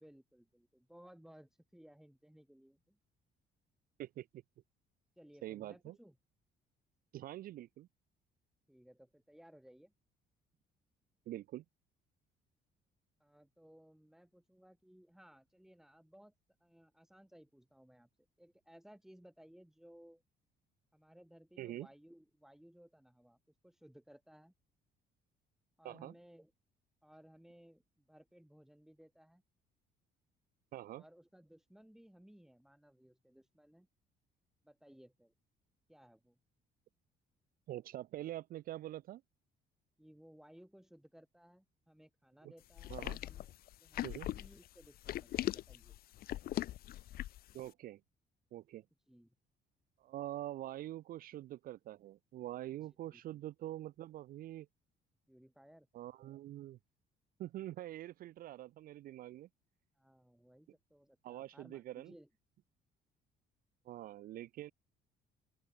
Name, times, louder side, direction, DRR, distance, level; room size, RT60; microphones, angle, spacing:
voice 1, 0.0-3.0 5.2-6.2 8.7-9.9 13.2-16.3 16.6-18.1 18.4-20.2 20.9-23.4 23.6-24.5 25.8-26.5 27.0-29.4 30.9-33.9 34.6-35.3 35.9-36.4 40.0-46.0 49.1-49.4 52.7-53.4 55.3-55.9 60.0-62.3, equal, ahead, 5.8 m, -61 dB
voice 2, 4.0-4.4 5.4-6.0 7.1-7.9 11.3-11.6 21.6-21.9 25.8-26.1 30.7-31.0 37.7-39.2 42.9-43.2 44.0-44.3 47.5-48.0 48.5-48.8 50.0-54.7 55.9-56.8 57.4-59.5 61.2-62.1 63.8-64.7, right 14 dB, 60° right, 0.5 m, -45 dB
sound 1, 42.8-47.5, left 14 dB, 65° left, 0.8 m, -39 dB
open air
cardioid pair, 110°, 17 cm